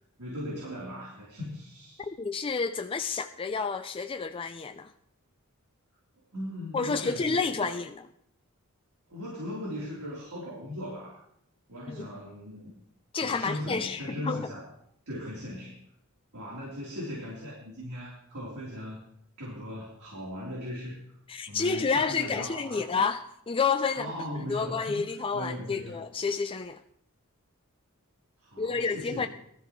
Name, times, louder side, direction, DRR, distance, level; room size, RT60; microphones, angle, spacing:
voice 1, 0.2-2.1 6.3-7.8 9.1-11.2 11.7-12.7 13.2-14.7 15.1-15.8 16.3-19.1 19.4-21.2 21.5-22.8 23.9-26.0 28.4-29.3, left 1 dB, 85° right, 3.7 m, -38 dB
voice 2, 2.0-4.9 6.7-8.0 11.9-12.1 13.1-14.5 21.3-24.1 24.5-26.8 28.6-29.3, left 5 dB, 25° left, 0.4 m, -30 dB
19.5 x 13.0 x 3.2 m
head